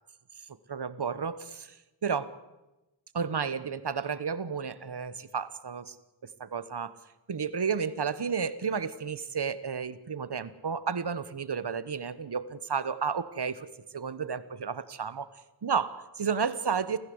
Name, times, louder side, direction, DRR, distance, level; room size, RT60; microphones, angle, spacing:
voice 1, 0.7-2.3 3.1-5.9 6.4-6.9 7.3-13.7 13.9-15.2 15.6-17.0, right 6 dB, 70° right, 14 dB, 1.4 m, -32 dB
29.5 x 15.0 x 8.1 m, 1.0 s
cardioid pair, 45°, 42 cm